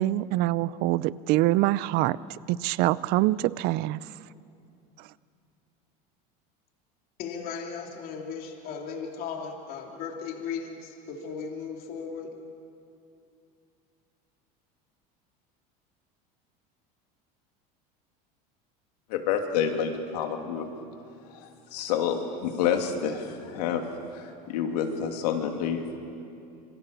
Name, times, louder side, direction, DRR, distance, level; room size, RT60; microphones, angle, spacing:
voice 1, 0.0-4.0, right 16 dB, 55° right, 19 dB, 0.6 m, -25 dB
voice 2, 7.2-12.3, left 6 dB, 50° left, 1 dB, 3.0 m, -36 dB
voice 3, 19.1-20.7 21.4-23.8 24.1-26.0, left 8 dB, 90° left, 4 dB, 3.0 m, -28 dB
27.0 x 25.0 x 6.9 m, 2.6 s
supercardioid pair, 140°, 20 cm